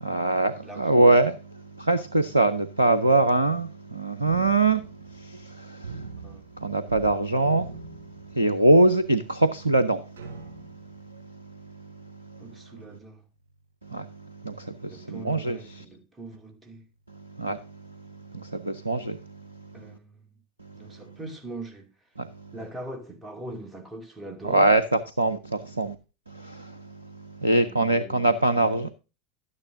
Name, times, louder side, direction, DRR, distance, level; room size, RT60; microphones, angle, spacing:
voice 1, 0.0-1.3 1.8-4.8 5.1-6.1 6.6-7.7 8.3-10.0 13.9-14.1 14.4-15.8 17.4-17.6 18.3-19.2 22.2-22.3 24.4-25.9 26.3-26.8 27.4-28.9, right 2 dB, 85° right, 0.6 m, -23 dB
voice 2, 0.6-1.1 6.2-6.4 12.4-13.2 14.9-16.9 19.7-20.2 20.8-21.9 22.5-24.7 27.6-28.3 28.7-28.9, right 1 dB, 15° right, 2.5 m, -41 dB
sound 1, 4.3-5.5 5.8-7.1 7.4-8.7 9.3-9.4 10.2-11.0, right 4 dB, 65° right, 4.3 m, -41 dB
12.0 x 9.7 x 2.6 m
figure-of-eight pair, 80°, 0 cm